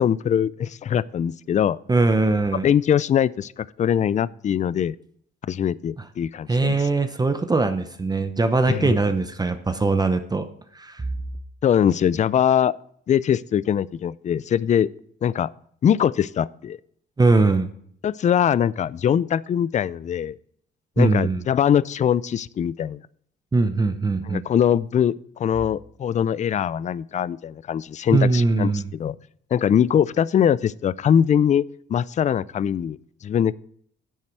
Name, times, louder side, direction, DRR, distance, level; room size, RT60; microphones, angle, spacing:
voice 1, 0.0-1.8 2.6-5.0 5.5-6.8 8.7-8.9 11.6-12.7 13.1-14.9 15.2-15.5 15.8-16.8 18.0-20.3 21.0-23.0 24.3-29.2 29.5-31.6 31.9-33.5, left 9 dB, 35° left, 20 dB, 0.4 m, -22 dB
voice 2, 1.9-2.7 6.5-10.5 10.7-11.0 17.2-17.7 21.0-21.4 23.5-24.4 28.1-28.9, right 3 dB, 20° right, 9 dB, 0.7 m, -21 dB
10.0 x 7.5 x 4.6 m, 0.63 s
cardioid pair, 90°, 20 cm